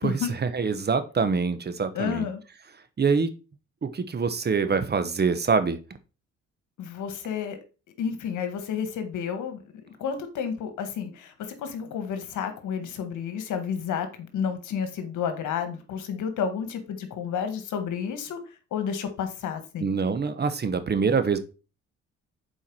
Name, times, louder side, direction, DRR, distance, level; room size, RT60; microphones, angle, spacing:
voice 1, 0.0-2.3 3.0-3.3 3.8-5.8 19.8-21.4, right 5 dB, 35° right, 1.0 m, -25 dB
voice 2, 1.9-2.4 6.8-7.6 8.0-9.6 10.0-11.3 11.6-18.4 18.7-19.9, left 7 dB, 80° left, 1.6 m, -31 dB
7.2 x 4.7 x 4.7 m
cardioid pair, 90°, 30 cm